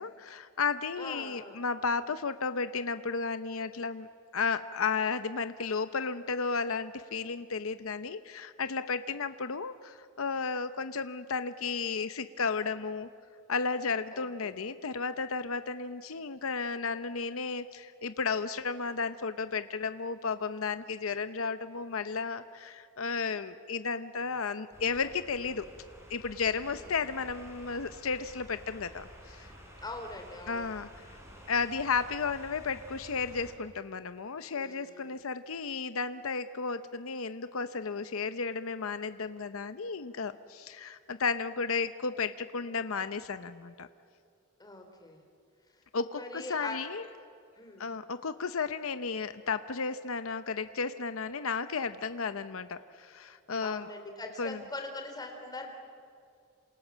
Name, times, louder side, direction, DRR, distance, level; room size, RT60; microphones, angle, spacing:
voice 1, 0.0-4.1 4.3-13.1 13.5-25.7 26.1-29.5 30.5-31.0 31.5-43.9 45.9-47.0 47.8-53.9 54.4-54.6, left 5 dB, 70° left, 11 dB, 0.8 m, -33 dB
voice 2, 1.0-1.6 14.1-14.5 26.6-26.9 29.8-30.7 34.5-35.1 44.6-45.2 46.1-46.8 47.6-47.9 53.6-55.7, left 2 dB, 20° left, 3 dB, 3.7 m, -42 dB
sound 1, 24.7-33.5, equal, 15° right, 5.5 m, -51 dB
28.0 x 27.0 x 7.4 m, 2.4 s
head